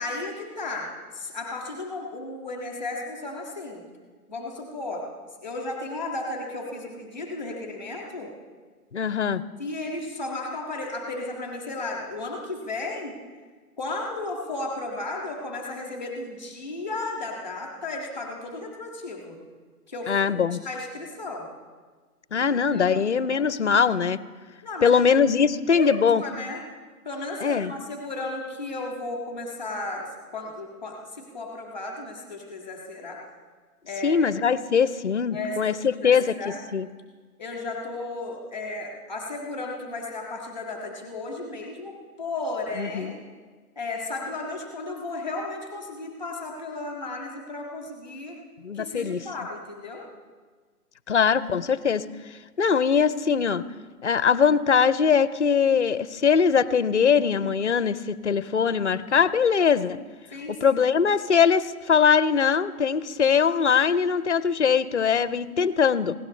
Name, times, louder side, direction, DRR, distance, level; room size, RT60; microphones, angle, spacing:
voice 1, 0.0-3.8 4.3-5.0 5.4-8.3 9.6-13.2 13.8-19.4 19.9-21.5 22.3-22.9 24.6-25.0 25.7-25.9 26.2-26.6 27.0-33.2 33.8-34.2 35.3-36.6 37.4-43.2 43.7-48.4 48.7-50.1 60.3-60.8, left 2 dB, 5° right, 0 dB, 1.4 m, -34 dB
voice 2, 8.9-9.4 20.1-20.6 22.3-24.2 24.8-26.2 27.4-27.7 34.0-36.9 42.8-43.1 48.6-49.2 51.1-52.0 52.6-53.6 54.0-60.0 60.6-66.1, left 6 dB, 50° left, 16 dB, 0.5 m, -22 dB
19.0 x 16.5 x 3.2 m, 1.4 s
hypercardioid pair, 180°, 46 cm